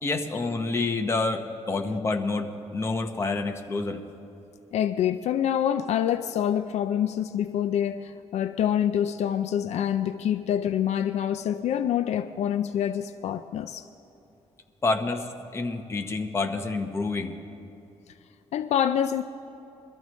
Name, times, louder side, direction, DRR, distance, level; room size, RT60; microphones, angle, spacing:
voice 1, 0.0-4.0 14.8-17.4, left 3 dB, 25° left, 4 dB, 1.0 m, -28 dB
voice 2, 4.7-13.9 18.5-19.2, left 9 dB, 70° left, 10 dB, 0.4 m, -26 dB
22.5 x 13.5 x 3.2 m, 2.9 s
cardioid pair, 140°, 12 cm